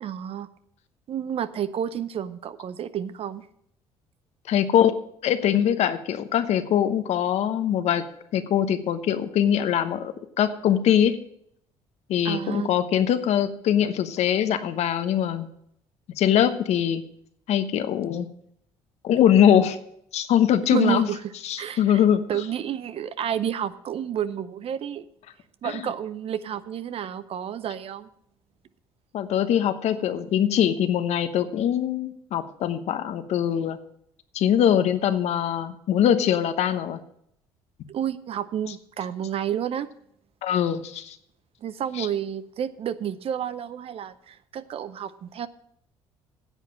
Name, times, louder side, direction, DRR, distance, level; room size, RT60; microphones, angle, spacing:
voice 1, 0.0-0.5 1.1-3.5 12.2-12.7 20.7-21.2 21.6-22.0 22.3-25.1 25.6-28.1 37.9-39.9 41.6-45.5, right 9 dB, 55° right, 14 dB, 0.6 m, -30 dB
voice 2, 4.5-4.9 5.2-8.0 8.3-11.2 12.1-15.5 16.2-17.0 17.5-18.3 19.0-19.8 20.1-21.1 21.4-22.4 25.6-25.9 29.1-33.8 34.3-37.0 40.4-41.2 42.0-42.1, left 10 dB, 70° left, 11 dB, 1.0 m, -22 dB
9.9 x 7.5 x 7.6 m, 0.71 s
supercardioid pair, 75°, 12 cm